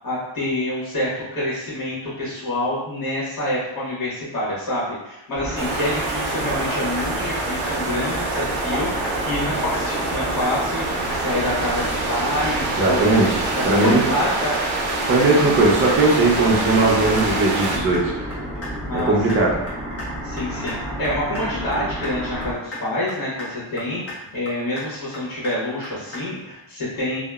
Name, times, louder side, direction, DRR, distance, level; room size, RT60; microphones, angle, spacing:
voice 1, 0.0-13.2 13.5-14.5 15.3-15.5 18.9-19.4 20.2-20.7 21.0-27.2, left 1 dB, 45° left, -8 dB, 1.2 m, -27 dB
sound 1, 5.3-22.5, equal, 10° right, 1.3 m, -31 dB
sound 2, 5.6-17.8, right 3 dB, 90° right, 0.6 m, -26 dB
sound 3, 6.7-7.1 7.4-7.8 8.0-8.4 8.7-9.1 9.4-9.8 10.1-10.5 10.8-11.2 11.5-11.8 12.1-12.5 12.8-13.2 13.5-13.9 14.2-14.6 14.9-15.3 15.6-16.0 16.3-16.6 16.9-17.3 17.6-18.0 18.3-18.7 19.0-19.4 19.7-20.1 20.4-20.7 21.0-21.4 21.7-22.1 22.4-22.8 23.1-23.5 23.8-24.1 24.5-24.9 25.1-25.5 25.8-26.2, left 2 dB, 30° left, 0.7 m, -36 dB
voice 2, 12.8-14.0 15.0-18.3 18.9-19.5, right 2 dB, 30° right, -3 dB, 0.4 m, -18 dB
2.8 x 2.0 x 2.3 m, 0.93 s
wide cardioid pair, 145°, 48 cm